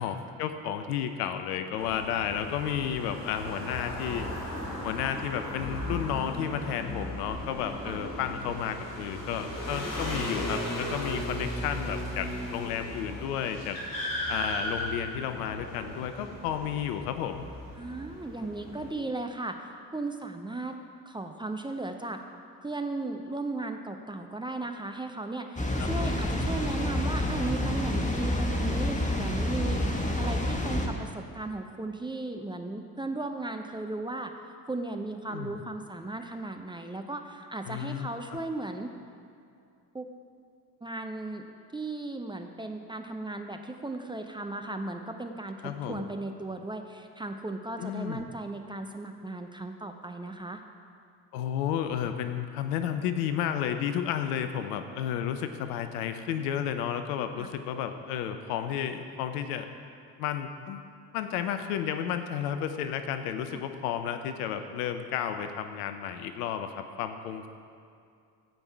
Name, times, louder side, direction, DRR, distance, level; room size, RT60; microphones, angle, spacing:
voice 1, 0.0-4.3 4.8-13.8 14.3-17.4 25.7-25.9 35.3-35.6 37.7-38.4 45.6-46.0 47.8-48.3 51.3-59.7 60.2-60.8 61.1-66.7 67.0-67.5, left 9 dB, 65° left, 8 dB, 0.8 m, -32 dB
sound 1, 1.8-18.9, equal, 40° left, 2.5 m, -36 dB
voice 2, 17.8-20.8 21.1-22.2 22.6-29.8 30.2-34.3 34.7-38.9 39.9-40.1 40.8-41.5 41.7-50.6 57.4-57.5 63.5-63.6, right 2 dB, 10° right, 5 dB, 0.6 m, -36 dB
Water, 25.6-30.9, left 1 dB, 15° left, 1.4 m, -28 dB
16.0 x 5.4 x 4.6 m, 2.4 s
figure-of-eight pair, 55°, 49 cm